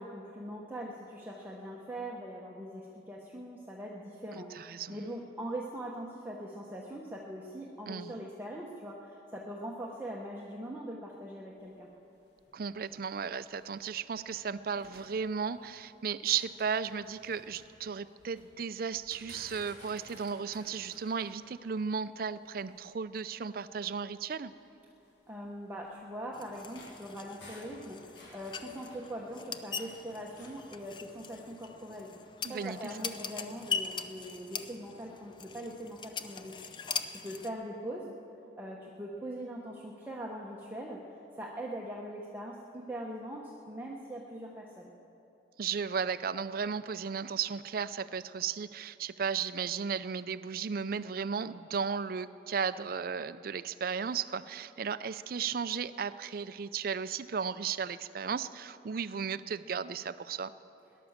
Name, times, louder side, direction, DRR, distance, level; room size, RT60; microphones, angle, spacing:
voice 1, 0.0-11.9 25.3-38.1 38.6-41.0 41.4-44.9, right 1 dB, 10° right, -3 dB, 1.0 m, -42 dB
voice 2, 4.3-5.0 7.9-8.1 12.5-24.5 32.4-32.9 45.6-60.5, right 6 dB, 55° right, 15 dB, 0.4 m, -35 dB
sound 1, 11.5-14.5 14.8-15.8 16.1-18.5 18.9-22.9 23.6-23.7 24.1-24.3 25.0-30.0 30.3-30.6, left 1 dB, 75° left, 3.7 m, -56 dB
sound 2, 26.3-37.5, left 6 dB, 25° left, 0.5 m, -41 dB
18.0 x 11.0 x 7.2 m, 2.9 s
head